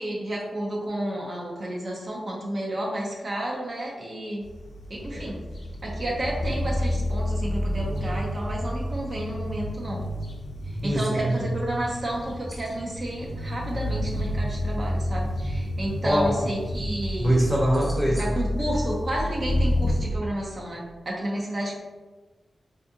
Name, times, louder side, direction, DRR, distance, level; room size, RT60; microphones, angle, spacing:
voice 1, 0.0-4.4 4.9-5.4 5.8-10.1 10.6-17.4 18.2-21.8, right 1 dB, 50° right, -3 dB, 0.6 m, -31 dB
sound 1, 4.4-20.1, left 1 dB, 65° left, 0.5 m, -30 dB
voice 2, 10.8-11.5 16.0-16.3 17.2-18.3, equal, ahead, -3 dB, 0.8 m, -23 dB
3.3 x 2.5 x 2.7 m, 1.2 s
wide cardioid pair, 80°, 0 cm